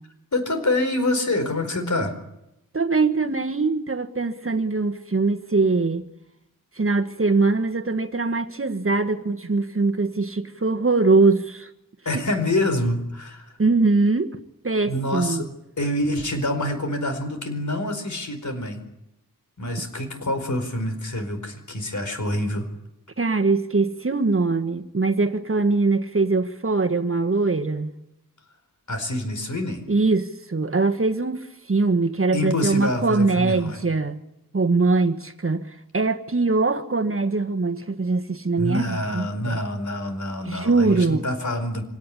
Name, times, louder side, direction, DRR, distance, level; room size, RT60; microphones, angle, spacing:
voice 1, 0.3-2.1 5.6-5.7 12.0-13.5 14.9-15.5 15.8-18.8 19.6-22.7 28.9-29.8 32.3-33.8 38.6-41.8, left 1 dB, 55° left, 4.8 m, -26 dB
voice 2, 2.7-6.1 6.8-11.7 13.6-14.4 14.6-15.5 23.2-28.0 29.9-34.2 34.5-39.6 40.4-41.3, right 3 dB, 40° right, 1.5 m, -22 dB
25.0 x 17.5 x 10.0 m
wide cardioid pair, 80°, 34 cm